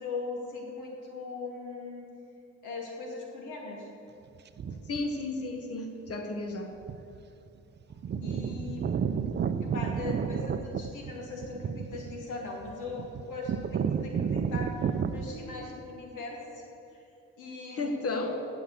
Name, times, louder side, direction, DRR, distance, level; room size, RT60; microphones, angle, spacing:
voice 1, 0.0-2.1 2.6-3.9 8.1-9.2 9.6-16.6 16.9-17.0 17.4-18.2, left 3 dB, 80° left, -1 dB, 2.3 m, -40 dB
sound 1, 4.6-5.0 6.1-6.2 6.8-7.2 7.5-7.6 7.8-15.2, right 7 dB, 35° right, 0.5 m, -31 dB
voice 2, 4.9-6.8 17.7-18.5, left 2 dB, 50° left, 5 dB, 1.5 m, -33 dB
8.3 x 7.9 x 8.1 m, 2.7 s
cardioid pair, 90°, 30 cm